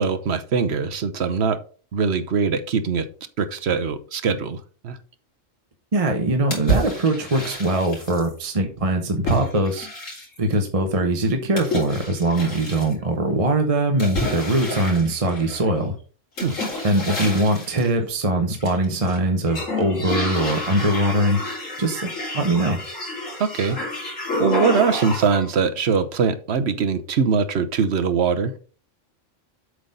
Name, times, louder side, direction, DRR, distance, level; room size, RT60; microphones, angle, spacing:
voice 1, 0.0-1.6 1.9-3.1 3.4-4.6 4.8-5.0 16.4-16.6 23.4-23.8 24.4-28.5, right 5 dB, 60° right, 11 dB, 1.1 m, -22 dB
voice 2, 5.9-9.9 10.4-16.0 16.8-21.4 21.8-22.8, right 1 dB, 30° right, 4 dB, 0.9 m, -22 dB
sound 1, 6.5-8.3 9.3-10.5 11.6-12.9 14.0-15.7 16.4-17.9 18.5-19.2 19.5-25.5, equal, 90° left, 3.6 m, -29 dB
7.9 x 4.1 x 5.1 m, 0.39 s
omnidirectional pair, 1.3 m